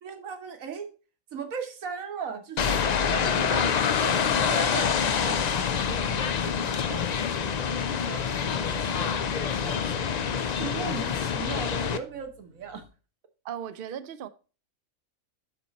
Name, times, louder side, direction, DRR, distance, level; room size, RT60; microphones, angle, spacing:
voice 1, 0.0-0.9 1.3-2.8 3.2-12.8, right 6 dB, 75° right, 1.5 m, -39 dB
sound 1, 2.6-12.0, left 7 dB, 85° left, 0.3 m, -26 dB
sound 2, 5.2-12.9, left 2 dB, 90° right, 4.4 m, -55 dB
voice 2, 13.4-14.3, right 9 dB, 55° right, 0.6 m, -36 dB
11.5 x 4.4 x 4.0 m
omnidirectional pair, 1.5 m